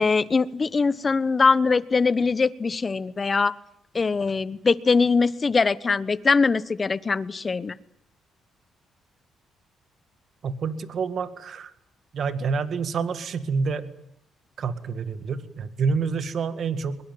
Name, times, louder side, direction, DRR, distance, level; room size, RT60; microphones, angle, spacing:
voice 1, 0.0-3.5 3.9-7.8, left 4 dB, 30° left, 17 dB, 1.1 m, -22 dB
voice 2, 10.4-11.7 12.1-13.9 14.6-17.0, right 5 dB, 60° right, 12 dB, 2.0 m, -28 dB
22.5 x 21.5 x 9.4 m, 0.71 s
cardioid pair, 90°, 0 cm